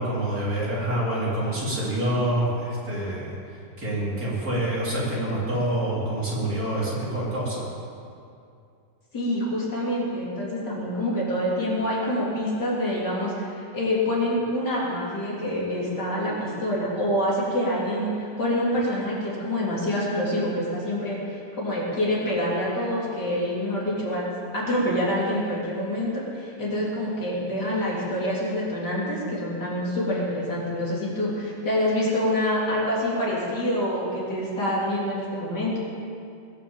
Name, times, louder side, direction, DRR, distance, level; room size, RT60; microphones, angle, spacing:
voice 1, 0.0-3.4 3.8-7.7, right 1 dB, 55° right, -6 dB, 4.3 m, -26 dB
voice 2, 9.1-24.2 24.5-35.8, left 1 dB, 65° left, -6 dB, 4.2 m, -26 dB
21.0 x 7.3 x 7.4 m, 2.5 s
omnidirectional pair, 1.9 m